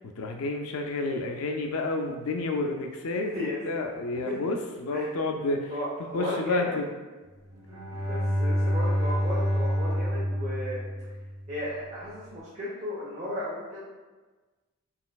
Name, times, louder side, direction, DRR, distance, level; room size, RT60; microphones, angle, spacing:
voice 1, 0.2-5.7 6.1-6.9, left 2 dB, 75° left, 3 dB, 0.4 m, -30 dB
voice 2, 3.2-3.9 4.2-4.5 4.9-5.1 5.7-6.8 7.9-11.1 11.5-13.8, left 1 dB, 35° right, -7 dB, 0.7 m, -35 dB
Bowed string instrument, 7.5-11.6, equal, 80° right, 0.8 m, -28 dB
4.2 x 3.8 x 2.3 m, 1.3 s
head